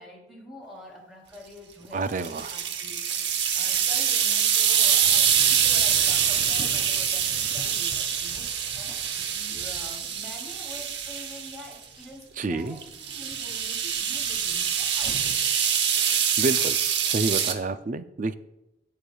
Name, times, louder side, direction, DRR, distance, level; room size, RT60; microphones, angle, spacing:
voice 1, 0.0-9.0 9.3-12.8 13.1-15.3, left 1 dB, ahead, -2 dB, 2.9 m, -46 dB
Thunder / Rain, 0.6-0.7 3.7-15.4, left 1 dB, 70° left, 1.8 m, -46 dB
voice 2, 1.9-2.5 12.4-12.8 16.0-16.8 17.1-18.3, right 3 dB, 45° right, 12 dB, 0.4 m, -29 dB
sound 1, 2.1-11.7 12.8-17.5, right 8 dB, 70° right, 0.8 m, -25 dB
17.5 x 6.7 x 2.3 m, 0.91 s
head